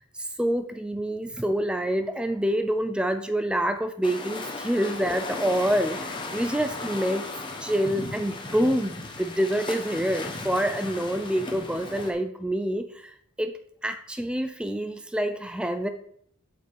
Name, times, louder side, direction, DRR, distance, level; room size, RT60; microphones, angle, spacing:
voice 1, 0.0-7.3 7.6-13.5 13.8-15.9, equal, 5° right, 9 dB, 0.4 m, -27 dB
sound 1, 4.0-12.1, left 2 dB, 20° left, 0.9 m, -36 dB
7.9 x 6.7 x 3.4 m, 0.66 s
head